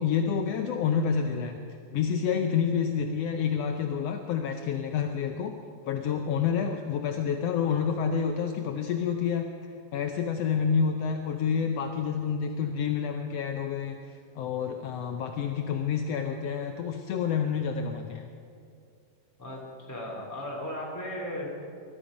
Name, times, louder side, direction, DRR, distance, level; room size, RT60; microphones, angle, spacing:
voice 1, 0.0-1.6 1.9-5.5 5.8-9.5 9.9-18.3, left 7 dB, 80° left, 5 dB, 1.4 m, -28 dB
voice 2, 19.9-21.5, left 1 dB, 5° left, -4 dB, 3.0 m, -36 dB
21.0 x 12.5 x 5.2 m, 2.3 s
omnidirectional pair, 3.7 m